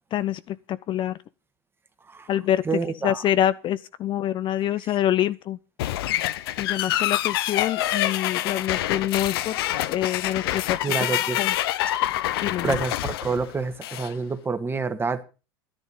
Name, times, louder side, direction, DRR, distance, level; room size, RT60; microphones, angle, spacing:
voice 1, 0.1-1.2 2.3-2.6 3.0-5.6 6.6-9.6 9.9-11.1 11.4-11.5 12.4-12.8, left 11 dB, 40° left, 0.5 m, -26 dB
voice 2, 2.6-3.2 10.8-11.4 12.6-15.2, right 4 dB, 20° right, 1.6 m, -27 dB
sound 1, 5.8-14.1, left 14 dB, 75° left, 0.8 m, -26 dB
11.0 x 10.5 x 5.5 m
hypercardioid pair, 95°, 12 cm